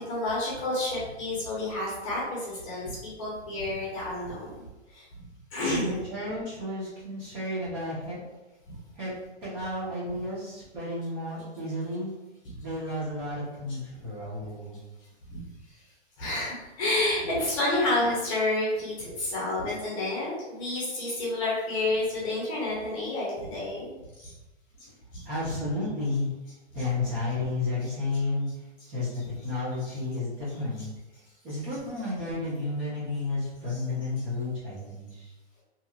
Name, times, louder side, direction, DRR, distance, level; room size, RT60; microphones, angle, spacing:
voice 1, 0.1-5.0 5.5-6.0 8.7-8.8 12.4-12.6 15.3-15.4 16.2-24.3 25.1-25.5 26.8-26.9 27.8-27.9 29.1-29.3 29.8-30.0 30.8-30.9 33.7-33.8, left 2 dB, 30° left, -7 dB, 0.9 m, -30 dB
voice 2, 5.7-8.3 9.0-9.1 9.4-12.1 12.6-14.8 25.2-26.3 26.7-28.5 28.9-30.9 31.4-35.2, left 2 dB, 20° right, -9 dB, 1.1 m, -32 dB
2.8 x 2.6 x 2.4 m, 1.1 s
hypercardioid pair, 155°, 35 cm